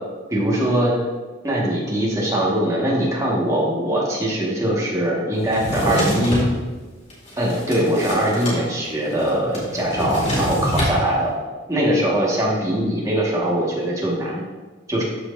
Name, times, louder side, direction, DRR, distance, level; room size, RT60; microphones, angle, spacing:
voice 1, 0.3-1.0 1.4-6.4 7.4-11.3 11.7-14.4 14.9-15.0, right 1 dB, 15° right, -5 dB, 1.6 m, -21 dB
Drawer open or close, 5.5-6.5 7.1-8.6 8.8-8.9 9.2-11.0, equal, 35° left, 2.3 m, -24 dB
13.0 x 4.5 x 2.6 m, 1.3 s
head